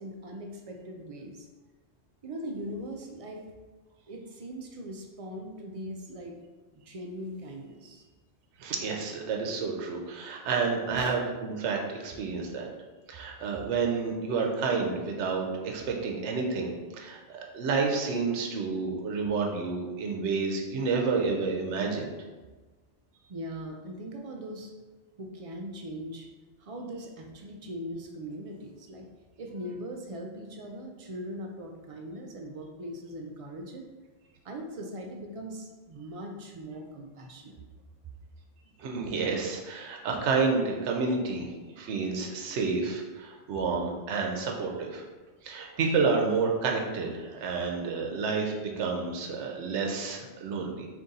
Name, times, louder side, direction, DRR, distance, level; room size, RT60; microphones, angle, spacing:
voice 1, 0.0-1.5 2.2-3.4 4.1-6.4 6.7-8.1 10.9-11.1 23.3-24.7 25.2-26.3 26.6-29.1 29.4-33.8 34.4-37.6, equal, 65° right, 1 dB, 0.3 m, -40 dB
voice 2, 8.6-12.7 13.1-17.2 17.5-22.1 38.8-41.5 41.8-45.0 45.4-50.9, right 4 dB, 85° right, 1 dB, 0.9 m, -29 dB
3.9 x 2.6 x 3.7 m, 1.3 s
omnidirectional pair, 1.2 m